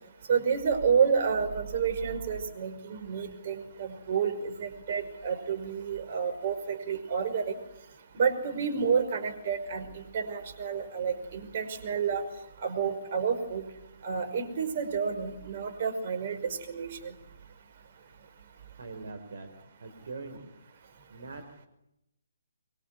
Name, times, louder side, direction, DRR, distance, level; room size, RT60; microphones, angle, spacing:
voice 1, 0.3-7.6 8.1-12.2 12.6-13.6 14.0-17.1, right 6 dB, 40° right, 7 dB, 5.4 m, -29 dB
voice 2, 18.8-19.5 19.8-20.5 21.1-21.7, right 3 dB, 60° right, 6 dB, 3.8 m, -42 dB
25.0 x 23.0 x 9.7 m, 0.87 s
figure-of-eight pair, 140°, 0 cm